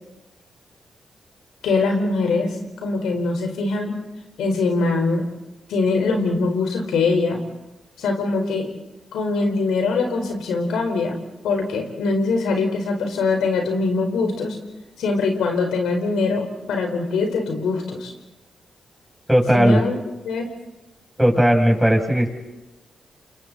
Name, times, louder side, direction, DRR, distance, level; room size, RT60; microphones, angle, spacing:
voice 1, 1.6-2.6 2.8-3.9 4.4-5.2 5.7-7.4 8.0-8.7 9.1-11.1 11.4-14.6 15.0-18.1 19.5-19.9 20.2-20.5, left 3 dB, 85° left, 3 dB, 4.6 m, -22 dB
voice 2, 19.3-19.8 21.2-22.3, equal, 5° right, 0 dB, 7.7 m, -16 dB
29.5 x 27.5 x 4.3 m, 1.0 s
supercardioid pair, 50°, 0 cm